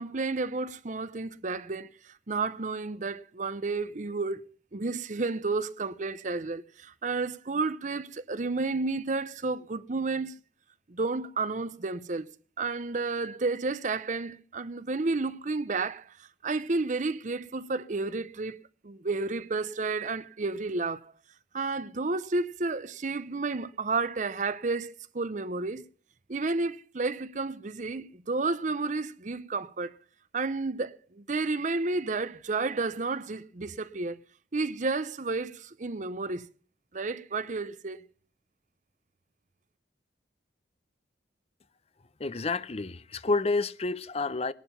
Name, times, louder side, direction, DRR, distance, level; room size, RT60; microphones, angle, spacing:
voice 1, 0.0-10.3 10.9-12.3 12.6-18.6 18.8-21.1 21.5-25.8 26.3-30.0 30.3-34.2 34.5-36.5 36.9-38.0, right 3 dB, 45° right, 0.7 m, -31 dB
voice 2, 42.2-44.5, left 3 dB, 35° left, 0.6 m, -29 dB
18.0 x 11.5 x 5.7 m
head